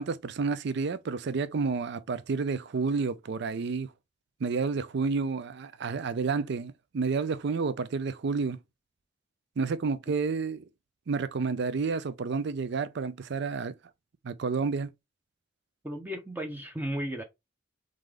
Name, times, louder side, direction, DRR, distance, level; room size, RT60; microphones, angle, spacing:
voice 1, 0.0-3.9 4.4-8.6 9.6-10.7 11.1-13.7 14.2-14.9, right 4 dB, 65° right, 0.4 m, -30 dB
voice 2, 15.8-17.2, equal, 10° right, 0.6 m, -34 dB
3.8 x 3.7 x 3.2 m
head